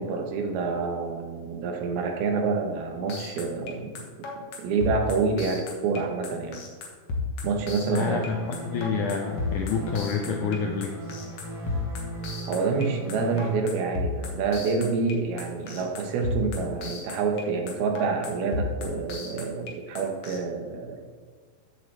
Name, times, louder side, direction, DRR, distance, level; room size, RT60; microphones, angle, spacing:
voice 1, 0.0-3.9 4.6-6.6 7.4-8.3 12.5-21.0, right 4 dB, 80° right, 3 dB, 3.0 m, -27 dB
sound 1, 3.1-20.4, left 4 dB, 60° left, 2.2 m, -33 dB
voice 2, 7.9-10.9, left 6 dB, 80° left, 2 dB, 1.8 m, -28 dB
sound 2, 8.0-13.6, right 2 dB, ahead, 1.7 m, -37 dB
14.5 x 7.3 x 3.3 m, 1.5 s
omnidirectional pair, 4.4 m